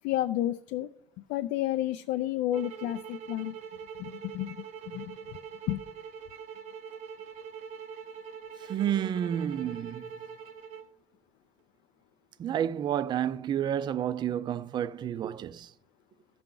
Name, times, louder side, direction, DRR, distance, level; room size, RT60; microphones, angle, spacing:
voice 1, 0.0-0.9 1.3-3.6 4.0-5.2 5.7-5.8, left 13 dB, 90° left, 0.4 m, -31 dB
sound 1, 2.5-10.9, right 7 dB, 60° right, 0.8 m, -43 dB
voice 2, 8.6-10.1 12.4-15.7, right 10 dB, 35° right, 0.4 m, -30 dB
15.0 x 5.8 x 3.8 m
cardioid pair, 165°, 14 cm